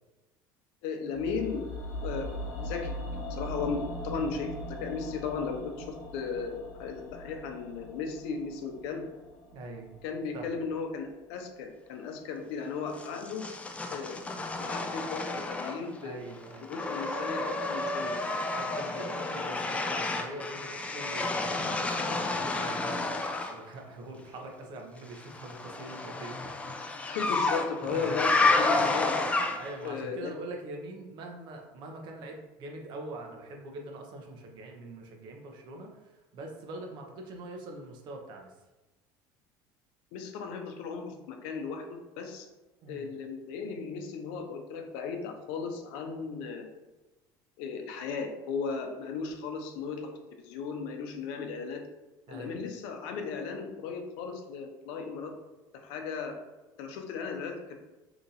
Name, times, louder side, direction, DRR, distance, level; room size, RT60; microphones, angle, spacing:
voice 1, 0.8-1.6 2.0-2.3 2.6-9.1 10.0-13.5 13.9-14.2 14.6-16.2 16.7-18.1 27.1-29.2 29.8-30.3 40.1-42.5 42.9-46.7 47.6-50.1 50.4-51.8 52.3-55.3 55.7-56.4 56.8-57.7, left 5 dB, 80° left, 4 dB, 0.6 m, -36 dB
sound 1, 1.1-11.2 11.5-11.6, left 1 dB, 40° left, 1.0 m, -41 dB
voice 2, 9.5-9.9 10.3-10.5 16.0-16.7 17.8-18.1 18.5-26.5 27.8-28.2 29.6-38.5 42.8-43.1 52.3-52.6, right 2 dB, 55° right, 2 dB, 0.8 m, -43 dB
sound 2, 13.0-16.0 16.3-23.6 25.1-29.9, left 3 dB, 15° left, 0.3 m, -30 dB
2.9 x 2.6 x 3.9 m, 1.1 s
supercardioid pair, 115°, 9 cm